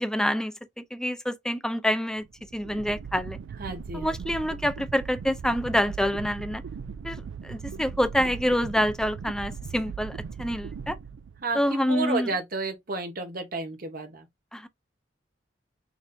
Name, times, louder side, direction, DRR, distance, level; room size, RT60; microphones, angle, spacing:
voice 1, 0.0-2.2 2.5-3.4 3.9-6.6 7.0-11.0 11.5-12.3 14.5-14.7, equal, 5° left, 0.4 m, -27 dB
sound 1, 2.2-11.7, right 6 dB, 80° right, 0.3 m, -39 dB
voice 2, 3.6-4.1 11.4-14.3, right 3 dB, 50° right, 1.0 m, -32 dB
6.1 x 2.5 x 2.6 m
head